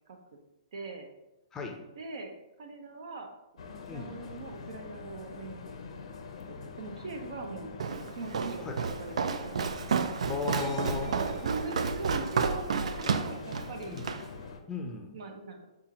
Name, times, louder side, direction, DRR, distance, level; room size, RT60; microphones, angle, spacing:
voice 1, 0.7-1.1 2.0-6.2 6.5-7.7 8.1-9.7 11.1-14.0 15.1-15.7, right 3 dB, 65° right, 4 dB, 0.7 m, -41 dB
sound 1, 3.6-14.6, left 5 dB, 70° left, 0.5 m, -45 dB
Walk footsteps, 7.8-14.3, right 5 dB, 80° right, 0.3 m, -31 dB
voice 2, 10.3-11.1 13.9-14.0 14.7-15.1, left 4 dB, 15° left, 2 dB, 0.5 m, -35 dB
5.4 x 2.5 x 2.8 m, 0.96 s
hypercardioid pair, 145°, 3 cm